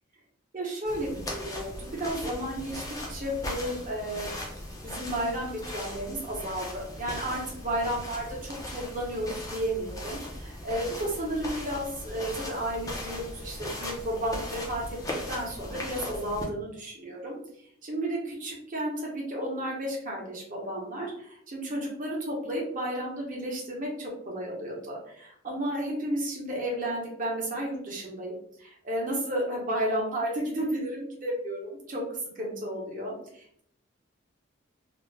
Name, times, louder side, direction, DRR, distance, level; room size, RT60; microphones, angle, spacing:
voice 1, 0.5-2.8 3.1-4.3 4.8-14.8 15.3-17.4 17.8-31.6 31.9-32.0 32.3-33.6, right 1 dB, 40° right, -2 dB, 0.8 m, -32 dB
sound 1, 0.8-16.4, left 1 dB, 15° left, 0.4 m, -38 dB
2.4 x 2.0 x 3.2 m, 0.68 s
head